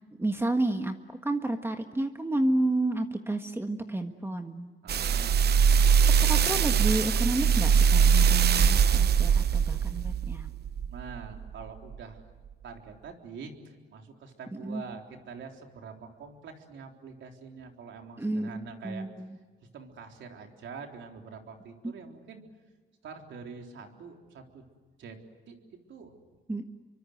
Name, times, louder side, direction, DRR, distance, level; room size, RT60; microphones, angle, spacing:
voice 1, 0.2-1.0 1.2-4.7 6.2-10.5 14.6-14.8 18.2-18.5 18.8-19.4 21.8-21.9 26.5-26.6, right 2 dB, 10° right, 6 dB, 1.6 m, -30 dB
voice 2, 4.8-5.5 10.9-12.2 12.6-19.1 19.7-22.4 23.0-24.6 25.0-25.2 25.5-25.6 25.9-26.2, right 5 dB, 70° right, 3 dB, 3.8 m, -45 dB
sound 1, 4.9-11.4 11.9-12.0, right 7 dB, 55° right, 0.8 m, -22 dB
29.0 x 24.0 x 7.9 m, 1.3 s
cardioid pair, 90°, 20 cm